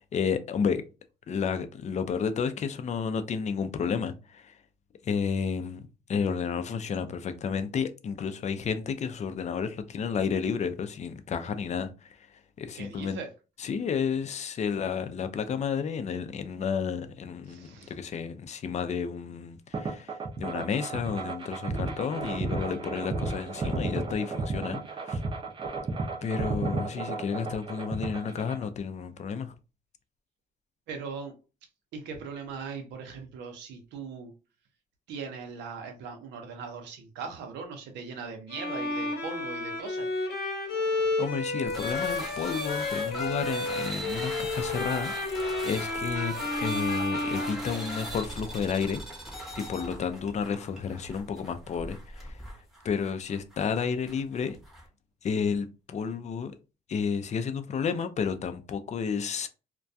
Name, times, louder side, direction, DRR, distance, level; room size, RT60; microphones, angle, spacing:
voice 1, 0.1-0.8 1.3-4.5 5.0-12.2 12.6-13.2 13.6-25.2 26.2-29.5 41.2-49.0 49.6-52.4 52.8-54.6 55.2-56.5 56.9-59.5, left 6 dB, 40° left, 0.4 m, -31 dB
voice 2, 12.8-13.3 17.5-17.9 30.9-31.3 31.9-34.3 35.1-40.1, right 5 dB, 90° right, 0.7 m, -39 dB
sound 1, 19.7-28.6, right 3 dB, 30° right, 0.5 m, -33 dB
Bowed string instrument, 38.5-48.3, left 2 dB, 65° left, 0.8 m, -31 dB
sound 2, 41.7-54.9, equal, ahead, 0.8 m, -40 dB
2.2 x 2.2 x 2.6 m
cardioid pair, 85°, 17 cm